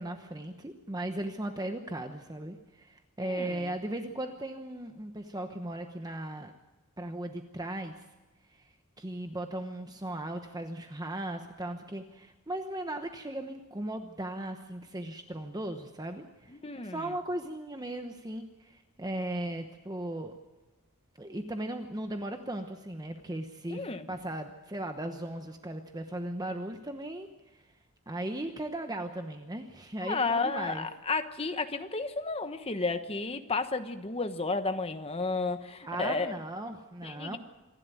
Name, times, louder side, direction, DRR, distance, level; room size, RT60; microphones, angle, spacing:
voice 1, 0.0-6.5 7.0-8.0 8.5-20.3 21.2-27.6 28.1-30.9 35.8-37.4, right 1 dB, 15° right, 6 dB, 1.0 m, -37 dB
voice 2, 3.2-3.7 16.5-17.1 23.7-24.1 30.0-36.3 37.0-37.4, left 3 dB, 25° left, 8 dB, 1.2 m, -32 dB
26.0 x 11.5 x 9.2 m, 1.1 s
head